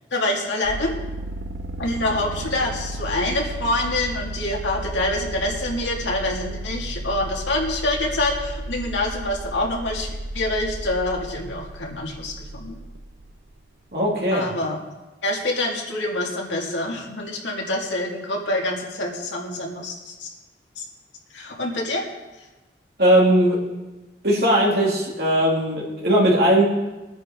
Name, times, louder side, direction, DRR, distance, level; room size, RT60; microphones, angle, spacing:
voice 1, 0.1-0.9 1.8-12.8 14.3-14.8 15.2-20.3 20.8-20.9 21.3-22.1, left 1 dB, 85° left, -1 dB, 2.5 m, -26 dB
sound 1, 0.6-13.3, right 1 dB, 80° right, 0.7 m, -33 dB
voice 2, 13.9-14.5 23.0-23.6 24.2-26.6, right 1 dB, 55° right, -3 dB, 3.2 m, -18 dB
20.5 x 9.6 x 3.9 m, 1.1 s
head